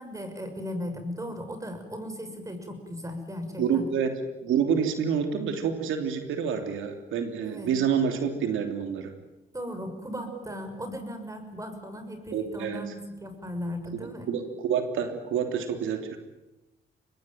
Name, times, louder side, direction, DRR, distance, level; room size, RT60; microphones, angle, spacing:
voice 1, 0.0-3.8 7.4-7.7 9.5-14.3, equal, 15° right, 7 dB, 6.4 m, -37 dB
voice 2, 3.6-4.1 4.4-9.1 10.3-10.4 12.3-12.8 14.3-16.2, right 7 dB, 85° right, 6 dB, 3.2 m, -28 dB
25.0 x 20.5 x 9.2 m, 0.97 s
cardioid pair, 90°, 20 cm